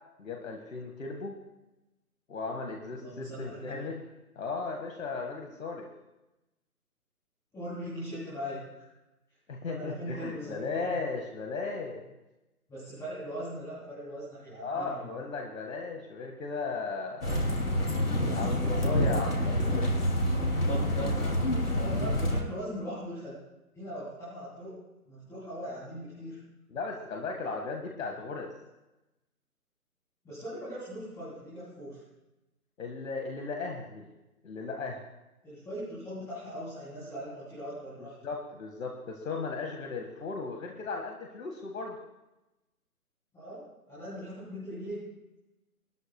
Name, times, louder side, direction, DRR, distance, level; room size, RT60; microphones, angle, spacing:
voice 1, 0.2-1.3 2.3-4.0 4.3-5.9 9.5-12.1 14.6-17.7 18.3-19.8 26.7-28.5 32.8-34.1 34.4-35.0 38.2-42.0, left 4 dB, 60° left, 1 dB, 1.8 m, -36 dB
voice 2, 3.0-3.8 7.5-8.9 9.6-10.9 12.7-15.1 21.6-23.3 23.7-24.8 25.1-26.4 30.2-32.0 35.4-38.1 43.3-45.0, equal, 5° left, -10 dB, 3.1 m, -40 dB
sound 1, 17.2-22.4, equal, 90° left, 2.7 m, -27 dB
22.0 x 13.0 x 2.3 m, 0.98 s
figure-of-eight pair, 145°, 45 cm